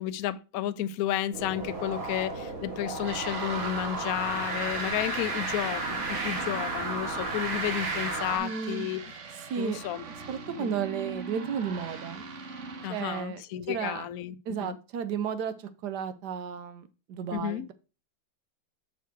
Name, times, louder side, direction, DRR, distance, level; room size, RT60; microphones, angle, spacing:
voice 1, 0.0-9.0 9.6-10.0 10.6-10.7 12.8-14.4 14.6-14.8 17.3-17.7, left 12 dB, 90° left, 0.7 m, -32 dB
sound 1, 1.3-8.4, right 2 dB, 85° right, 3.4 m, -33 dB
sound 2, 3.0-13.2, right 5 dB, 50° right, 1.1 m, -41 dB
voice 2, 8.3-8.9 9.5-9.8 10.3-12.2 12.9-13.4 13.7-14.1 14.5-17.7, right 7 dB, 65° right, 1.3 m, -33 dB
6.5 x 5.6 x 4.5 m
omnidirectional pair, 2.2 m